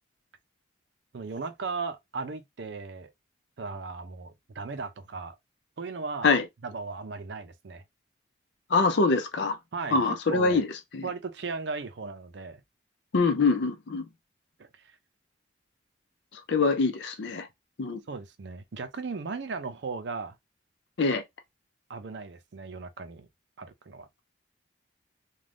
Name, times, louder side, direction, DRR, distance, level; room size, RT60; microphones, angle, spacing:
voice 1, 1.1-3.1 3.6-5.4 5.8-6.3 6.6-7.8 9.7-10.6 11.0-12.6 14.6-15.0 18.1-20.3 21.9-23.3 23.6-24.1, right 4 dB, 70° right, 0.5 m, -37 dB
voice 2, 8.7-9.6 9.9-10.7 10.9-11.0 13.1-14.0 16.5-17.5 17.8-18.0 21.0-21.2, left 4 dB, 70° left, 0.5 m, -24 dB
2.5 x 2.3 x 3.3 m
head